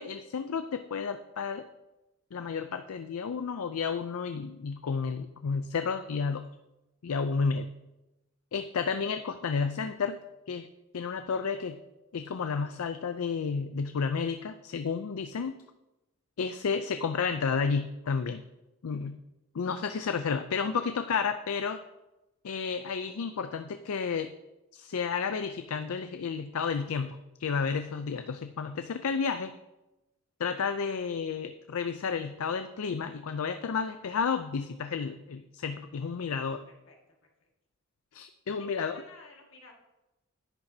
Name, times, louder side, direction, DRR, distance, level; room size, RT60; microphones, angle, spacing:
voice 1, 0.0-1.6 2.3-6.5 7.0-7.7 8.5-10.2 10.5-10.7 10.9-11.8 12.1-15.6 16.4-18.4 18.8-19.2 19.5-21.8 22.4-24.3 24.7-29.5 30.4-36.6 38.1-39.0, left 5 dB, 80° left, 9 dB, 0.4 m, -31 dB
voice 2, 36.2-37.0 37.4-37.5 38.6-39.7, left 3 dB, 65° left, 0 dB, 1.9 m, -53 dB
10.5 x 9.6 x 2.8 m, 0.99 s
head